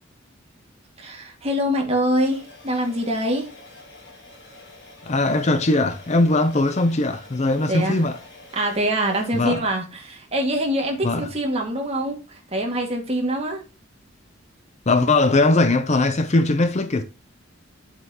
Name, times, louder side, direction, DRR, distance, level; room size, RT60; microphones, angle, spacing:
voice 1, 1.0-3.5 7.7-8.0 8.5-13.6, right 1 dB, 30° right, 2.0 m, -24 dB
sound 1, 2.1-9.5, left 2 dB, 60° left, 4.1 m, -47 dB
voice 2, 5.0-8.2 9.3-9.6 11.0-11.3 14.9-17.0, left 2 dB, 35° left, 0.6 m, -20 dB
7.9 x 7.5 x 2.9 m
head